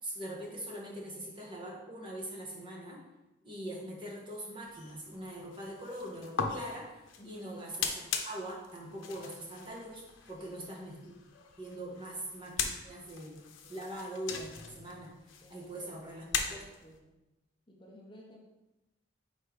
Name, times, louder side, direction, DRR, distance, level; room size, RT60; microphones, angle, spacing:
voice 1, 0.0-3.0 3.4-6.9 7.2-11.1 11.6-13.4 13.7-14.5 14.8-15.1 15.5-16.2 16.5-16.6, right 1 dB, 25° right, -3 dB, 1.3 m, -42 dB
sound 1, 4.7-17.0, left 6 dB, 85° left, 0.7 m, -40 dB
voice 2, 7.2-7.5 10.4-10.8 13.6-13.8 15.4-16.0 16.3-17.2 17.7-18.4, equal, 25° left, -1 dB, 0.7 m, -55 dB
4.9 x 4.4 x 5.0 m, 0.99 s
head